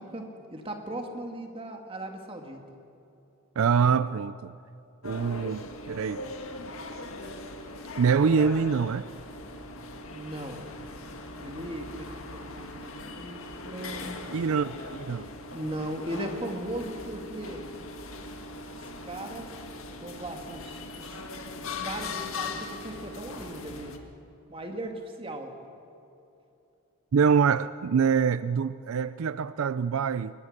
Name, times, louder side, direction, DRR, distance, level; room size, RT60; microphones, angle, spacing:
voice 1, 0.0-2.6 10.1-10.6 11.4-14.2 15.5-17.6 18.8-19.5 20.0-21.2 21.8-24.0 24.5-25.6, right 1 dB, 25° right, 3 dB, 2.0 m, -38 dB
voice 2, 3.6-4.5 5.0-6.2 8.0-9.1 14.3-15.3 27.1-30.3, right 6 dB, 75° right, 15 dB, 0.4 m, -25 dB
sound 1, 5.0-24.0, left 3 dB, 75° left, 1.8 m, -40 dB
21.5 x 21.0 x 6.6 m, 2.8 s
head